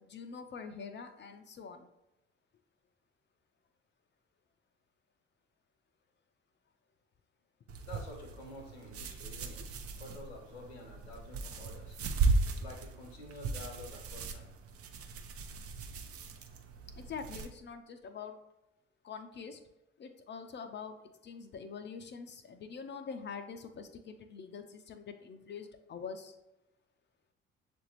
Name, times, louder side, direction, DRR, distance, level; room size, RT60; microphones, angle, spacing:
voice 1, 0.0-1.9 9.5-9.7 16.9-18.4 19.0-19.6 20.0-26.4, left 5 dB, 35° left, 7 dB, 0.5 m, -45 dB
sound 1, 7.7-17.5, right 3 dB, 45° right, 0.6 m, -36 dB
voice 2, 7.8-9.6 10.0-12.0 12.5-14.5, left 1 dB, 85° left, 2 dB, 0.8 m, -49 dB
6.9 x 2.6 x 3.0 m, 0.93 s
figure-of-eight pair, 45°, 31 cm